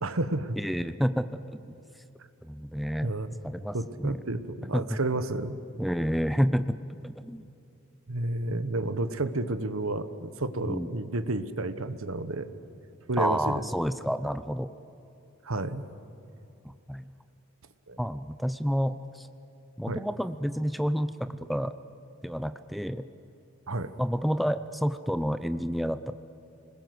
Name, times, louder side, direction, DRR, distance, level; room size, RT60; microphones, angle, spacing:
voice 1, 0.0-0.6 3.0-3.3 3.7-5.6 8.1-12.5 13.1-13.5 15.4-15.9 17.9-18.0 19.9-20.0 23.7-23.9, right 2 dB, 80° right, 12 dB, 1.2 m, -31 dB
voice 2, 0.6-1.8 2.4-3.1 3.4-4.2 4.7-5.0 5.8-7.5 10.6-10.9 13.2-14.7 16.6-17.0 18.0-19.3 19.8-21.8 22.2-23.1 24.0-26.1, equal, ahead, 11 dB, 0.5 m, -29 dB
27.0 x 20.0 x 8.0 m, 2.9 s
head